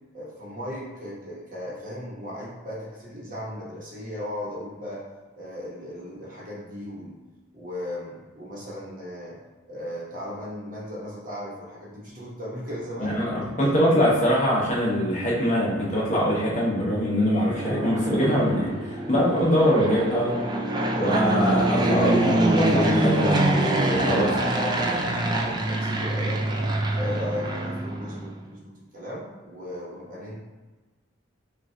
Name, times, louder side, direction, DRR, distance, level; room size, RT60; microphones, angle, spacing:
voice 1, 0.1-5.0 5.3-7.2 7.5-9.4 9.7-14.3 24.0-26.7 27.0-30.4, equal, 45° right, -5 dB, 1.1 m, -36 dB
voice 2, 13.0-20.4 20.9-23.4 23.9-24.3, equal, 40° left, -5 dB, 1.0 m, -23 dB
Fixed-wing aircraft airplane, 17.2-28.3, right 1 dB, 20° right, 0.3 m, -25 dB
5.5 x 2.5 x 2.8 m, 1.3 s
head